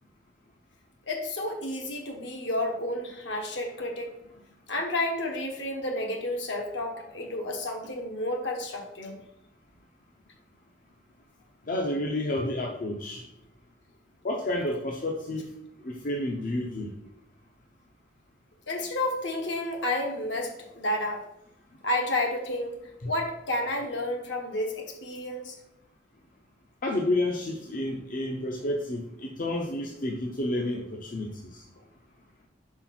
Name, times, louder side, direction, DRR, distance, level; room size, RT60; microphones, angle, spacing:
voice 1, 1.1-4.1 4.7-9.2 18.7-21.3 21.8-22.8 23.0-25.6, left 1 dB, 70° left, 3 dB, 1.2 m, -31 dB
voice 2, 11.7-13.2 14.2-15.5 15.8-16.9 23.0-23.1 26.8-31.6, left 1 dB, 45° left, 1 dB, 0.7 m, -30 dB
4.5 x 4.4 x 5.8 m, 0.82 s
head